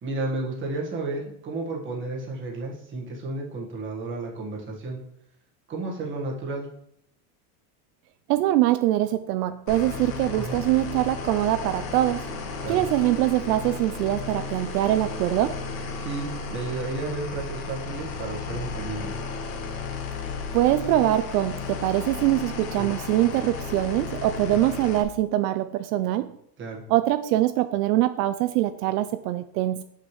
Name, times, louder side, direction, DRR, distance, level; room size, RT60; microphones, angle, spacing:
voice 1, 0.0-5.0 5.7-6.7 10.3-10.6 12.6-12.8 16.0-19.1 22.8-22.9 24.5-24.6 26.6-26.8, right 2 dB, 25° right, -2 dB, 1.6 m, -32 dB
voice 2, 8.3-12.2 12.7-15.6 20.5-26.3 26.9-29.8, right 14 dB, 80° right, 12 dB, 0.5 m, -23 dB
sound 1, 9.7-25.0, left 4 dB, 75° left, 1.5 m, -34 dB
6.8 x 6.1 x 3.2 m, 0.72 s
supercardioid pair, 150°, 47 cm